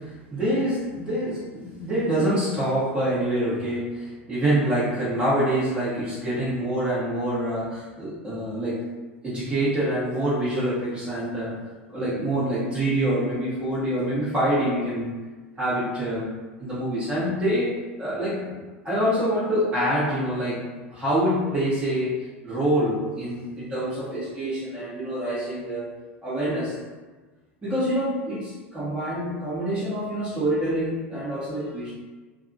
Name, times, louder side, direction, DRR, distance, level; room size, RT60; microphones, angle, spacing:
voice 1, 0.0-8.8 9.2-11.6 11.9-15.2 15.6-16.3 16.6-17.7 18.0-18.6 18.8-25.9 26.2-26.8 27.6-31.9, right 1 dB, 15° right, -11 dB, 1.2 m, -26 dB
2.7 x 2.6 x 2.5 m, 1.3 s
hypercardioid pair, 85°, 7 cm